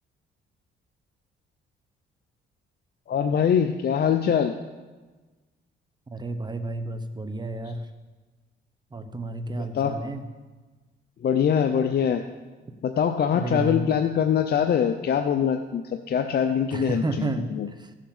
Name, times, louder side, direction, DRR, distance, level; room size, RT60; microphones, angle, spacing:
voice 1, 3.1-4.5 9.7-9.9 11.2-12.2 12.8-15.8 16.1-17.3 17.6-17.7, left 8 dB, 55° left, 6 dB, 0.7 m, -23 dB
voice 2, 6.1-7.9 8.9-10.3 13.3-13.9 16.7-17.9, right 2 dB, 20° right, 9 dB, 1.1 m, -31 dB
15.0 x 7.5 x 5.5 m, 1.3 s
cardioid pair, 90°, 20 cm